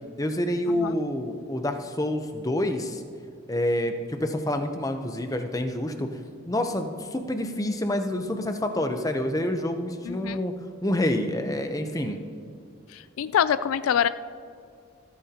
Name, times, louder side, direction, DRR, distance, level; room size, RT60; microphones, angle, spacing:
voice 1, 0.2-3.0 3.5-6.1 6.5-10.5 10.8-12.2, left 1 dB, 15° left, 6 dB, 0.7 m, -27 dB
voice 2, 10.1-10.4 12.9-14.1, left 8 dB, 85° left, 14 dB, 0.3 m, -25 dB
27.0 x 9.1 x 2.9 m, 2.3 s
head